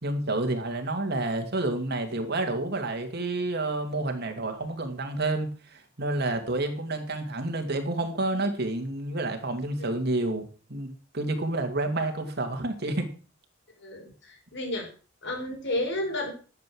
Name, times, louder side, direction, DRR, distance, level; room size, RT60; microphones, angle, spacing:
voice 1, 0.0-10.9 11.1-13.1, right 2 dB, 55° right, 5 dB, 2.4 m, -29 dB
voice 2, 13.8-14.9 15.2-16.3, left 1 dB, 65° left, 1 dB, 4.8 m, -32 dB
12.0 x 8.0 x 6.2 m, 0.38 s
head